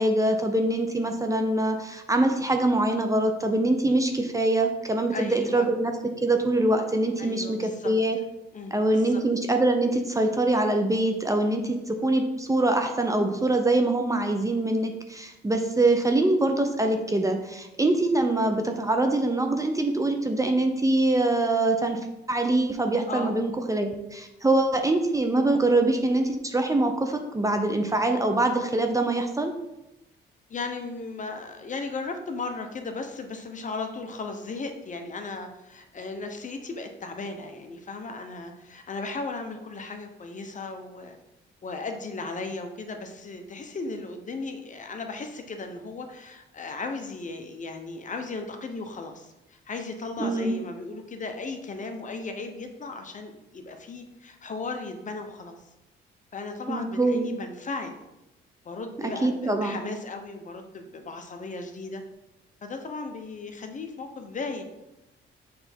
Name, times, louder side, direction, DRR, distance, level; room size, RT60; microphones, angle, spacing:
voice 1, 0.0-5.9 6.2-8.2 8.7-22.0 22.3-29.5 50.2-50.6 56.7-57.3 59.0-59.8, right 2 dB, 15° right, 5 dB, 0.6 m, -24 dB
voice 2, 5.1-5.7 7.2-7.9 8.5-9.2 23.1-23.3 30.5-41.2 41.6-55.6 56.3-58.0 58.6-62.0 62.6-64.6, left 3 dB, 40° left, 5 dB, 0.8 m, -36 dB
6.7 x 3.3 x 4.4 m, 0.94 s
cardioid pair, 90°, 20 cm